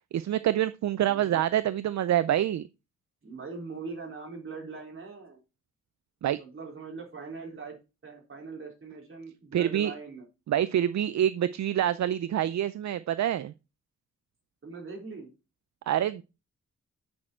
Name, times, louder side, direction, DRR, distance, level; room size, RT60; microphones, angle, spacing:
voice 1, 0.1-2.7 6.2-6.4 9.5-9.9 10.5-13.5 15.9-16.2, right 11 dB, 70° right, 0.5 m, -26 dB
voice 2, 1.1-1.4 3.2-5.4 6.2-7.8 8.0-10.2 14.6-15.3, right 4 dB, 45° right, 4.1 m, -41 dB
8.6 x 6.4 x 4.4 m
wide cardioid pair, 100°, 29 cm